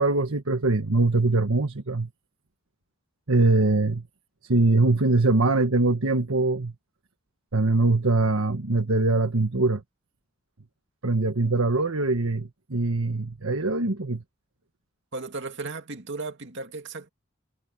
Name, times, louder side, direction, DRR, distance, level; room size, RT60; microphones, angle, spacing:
voice 1, 0.0-2.1 3.3-4.0 4.4-6.7 7.5-9.8 11.0-14.2, right 2 dB, 90° right, 1.5 m, -22 dB
voice 2, 15.1-17.1, right 3 dB, 60° right, 2.5 m, -35 dB
head